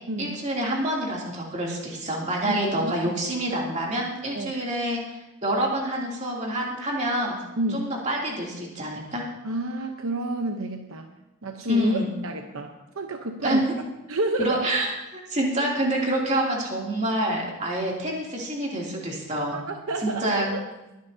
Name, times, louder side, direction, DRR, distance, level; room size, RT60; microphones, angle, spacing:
voice 1, 0.2-7.3 7.7-9.2 11.7-12.1 13.4-13.7 14.4-19.6 20.0-20.5, right 1 dB, 35° right, -3 dB, 2.8 m, -27 dB
voice 2, 2.4-2.9 4.3-4.6 7.6-7.9 9.4-11.1 11.4-13.6 14.1-14.5 19.5-20.6, right 2 dB, 70° right, 4 dB, 0.9 m, -30 dB
21.0 x 10.5 x 2.8 m, 1.0 s
head